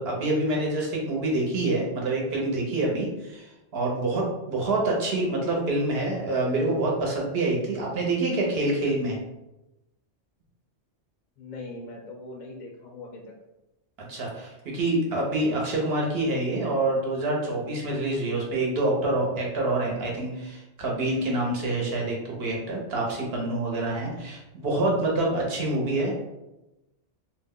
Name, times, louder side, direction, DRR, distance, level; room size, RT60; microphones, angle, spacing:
voice 1, 0.0-3.5 3.7-9.2 14.1-26.1, right 2 dB, 65° right, -2 dB, 0.9 m, -26 dB
voice 2, 11.4-13.3, left 2 dB, 60° left, 0 dB, 0.5 m, -41 dB
2.5 x 2.0 x 3.5 m, 0.96 s
omnidirectional pair, 1.1 m